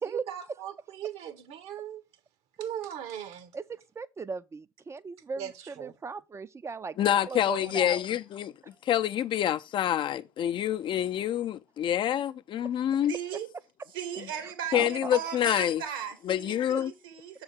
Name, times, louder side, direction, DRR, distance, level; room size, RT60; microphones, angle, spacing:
voice 1, 0.3-2.0 2.6-3.5 5.4-5.9, right 10 dB, 60° right, 1.2 m, -39 dB
voice 2, 3.5-8.0 14.3-15.1, right 5 dB, 25° right, 0.6 m, -38 dB
voice 3, 7.0-8.5 8.8-13.1 14.2-14.3 14.7-15.8 16.2-16.9, left 11 dB, 45° left, 0.6 m, -27 dB
voice 4, 13.1-13.5 13.9-17.4, right 9 dB, 75° right, 2.0 m, -37 dB
7.1 x 3.8 x 6.3 m
hypercardioid pair, 65°, 12 cm